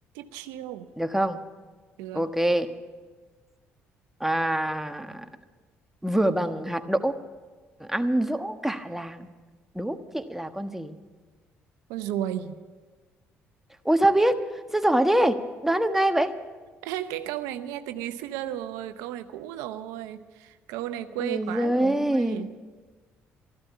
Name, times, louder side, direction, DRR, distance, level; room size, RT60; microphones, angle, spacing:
voice 1, 0.1-0.9 2.0-2.3 11.9-12.6 16.8-22.5, right 12 dB, 80° right, 10 dB, 0.7 m, -34 dB
voice 2, 1.0-1.4 2.1-2.7 4.2-5.2 6.0-7.1 7.8-9.3 9.7-11.0 13.8-14.4 14.7-16.3 21.2-22.5, right 1 dB, 5° right, 7 dB, 1.3 m, -25 dB
14.0 x 12.0 x 8.3 m, 1.4 s
hypercardioid pair, 60°, 6 cm